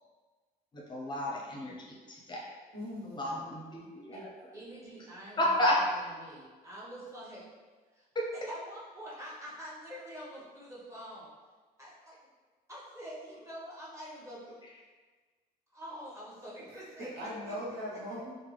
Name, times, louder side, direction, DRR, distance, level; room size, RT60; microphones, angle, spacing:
voice 1, 0.7-1.8 2.1-2.5 3.1-4.2 5.4-5.8 8.1-8.3, left 1 dB, 25° left, -3 dB, 0.6 m, -31 dB
voice 2, 2.7-3.9 16.7-18.3, equal, 75° right, -5 dB, 0.9 m, -41 dB
voice 3, 4.5-7.4 7.9-8.1 8.3-11.3 11.8-11.9 12.7-14.6 15.7-17.5, equal, 15° right, -7 dB, 1.0 m, -46 dB
3.3 x 2.1 x 3.1 m, 1.4 s
cardioid pair, 110°, 17 cm